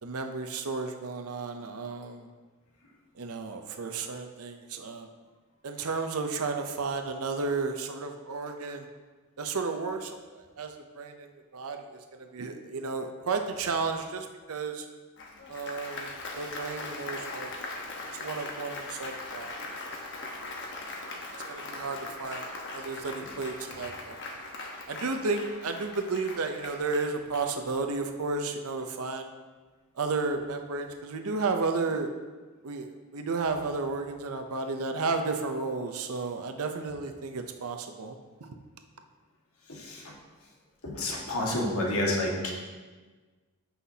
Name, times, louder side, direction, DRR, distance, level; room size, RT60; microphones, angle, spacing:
voice 1, 0.0-2.3 3.2-5.1 5.6-8.9 9.4-14.9 15.5-17.5 18.2-19.5 21.5-24.2 24.9-29.3 30.0-32.1 32.6-38.2, right 4 dB, 80° right, 5 dB, 0.7 m, -33 dB
Applause, 15.2-27.9, left 2 dB, 55° left, 1.1 m, -40 dB
voice 2, 40.8-42.5, left 1 dB, 75° left, -2 dB, 1.7 m, -29 dB
14.0 x 5.7 x 2.8 m, 1.4 s
head